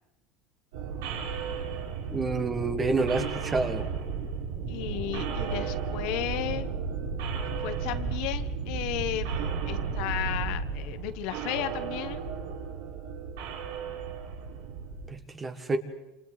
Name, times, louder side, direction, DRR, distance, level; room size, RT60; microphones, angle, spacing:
sound 1, 0.7-15.1, right 5 dB, 85° right, 4.7 m, -34 dB
voice 1, 2.1-3.8 15.1-15.8, right 3 dB, 15° right, 8 dB, 1.7 m, -28 dB
voice 2, 4.7-6.7 7.6-12.2, left 13 dB, 60° left, 10 dB, 1.3 m, -34 dB
28.0 x 28.0 x 4.1 m, 1.0 s
cardioid pair, 165°, 0 cm